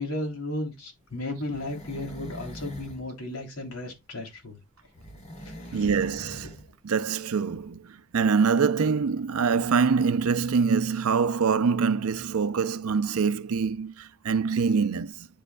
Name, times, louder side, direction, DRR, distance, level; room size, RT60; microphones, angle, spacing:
voice 1, 0.0-4.6 5.4-5.9, left 1 dB, 90° left, 3.2 m, -34 dB
sound 1, 1.1-3.1 4.9-6.7 6.9-7.0, equal, 30° left, 2.8 m, -43 dB
voice 2, 5.7-15.3, right 5 dB, 80° right, 0.5 m, -25 dB
10.5 x 5.0 x 2.3 m
head